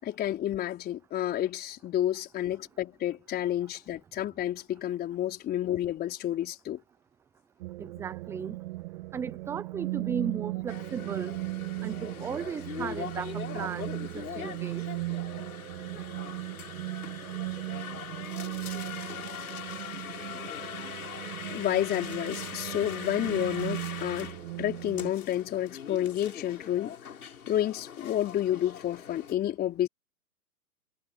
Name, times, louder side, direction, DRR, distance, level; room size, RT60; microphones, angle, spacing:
voice 1, 0.0-6.8 21.5-24.3 24.6-27.0 27.5-29.9, left 12 dB, 20° left, 4.4 m, -30 dB
sound 1, 7.6-25.1, right 20 dB, 40° right, 2.2 m, -37 dB
voice 2, 7.8-8.6 9.1-11.3 11.8-14.8, right 7 dB, 5° right, 0.7 m, -36 dB
sound 2, 10.7-29.3, left 8 dB, 70° left, 7.4 m, -41 dB
hypercardioid pair, 130°, 45 cm